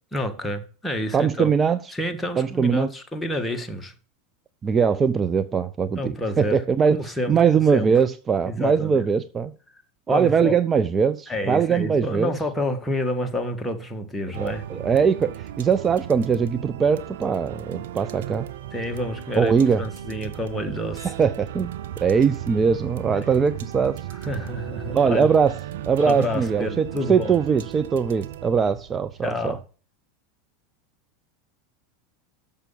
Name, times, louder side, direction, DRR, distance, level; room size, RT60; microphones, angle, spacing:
voice 1, 0.1-1.5 1.9-3.9 5.9-6.6 6.9-7.9 8.5-9.0 10.1-10.6 11.3-14.7 18.7-21.1 23.1-23.4 24.2-25.3 26.0-27.4 28.5-28.6 29.2-29.6, left 1 dB, 10° left, 1.6 m, -29 dB
voice 2, 1.1-1.8 2.4-2.9 4.6-7.0 7.3-9.5 10.1-12.3 14.4-18.5 19.4-19.8 21.0-21.7 22.0-24.0 24.9-25.5 25.9-29.6, right 6 dB, 25° right, 0.5 m, -21 dB
sound 1, 14.3-29.6, right 12 dB, 70° right, 0.6 m, -36 dB
6.8 x 6.0 x 7.0 m
hypercardioid pair, 90°, 0 cm